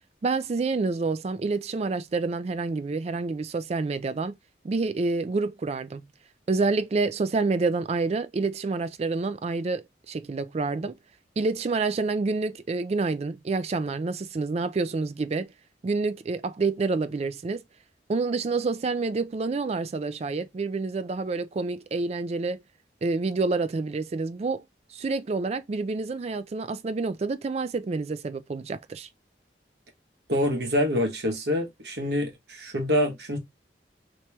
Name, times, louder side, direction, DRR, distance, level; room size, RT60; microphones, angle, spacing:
voice 1, 0.2-4.3 4.6-6.1 6.5-11.0 11.4-15.5 15.8-17.6 18.1-22.6 23.0-24.6 24.9-29.1, right 3 dB, 35° right, 0.3 m, -28 dB
voice 2, 30.3-33.4, left 1 dB, 65° right, 1.1 m, -26 dB
2.9 x 2.9 x 3.2 m
head